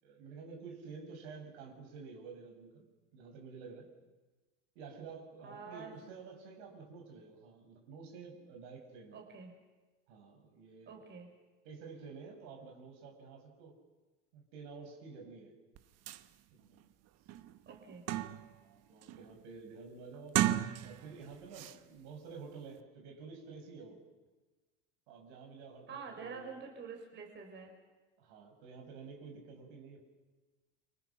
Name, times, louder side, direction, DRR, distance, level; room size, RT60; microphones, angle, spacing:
voice 1, 0.0-3.9 4.7-9.2 10.1-11.0 11.6-13.7 14.3-15.5 16.5-16.8 18.6-20.4 20.8-24.0 25.1-26.6 28.2-30.0, right 5 dB, 75° right, 2 dB, 6.7 m, -50 dB
voice 2, 5.4-5.9 9.1-9.5 10.9-11.3 17.6-18.0 25.9-27.7, right 5 dB, 35° right, 2 dB, 4.9 m, -47 dB
sound 1, 15.8-15.9 16.1-16.2 16.8-16.9 17.3-18.6 19.0-19.4 20.2-21.2 21.5-21.8, right 13 dB, 50° right, 1.3 m, -34 dB
29.0 x 24.5 x 6.0 m, 1.2 s
supercardioid pair, 120°, 33 cm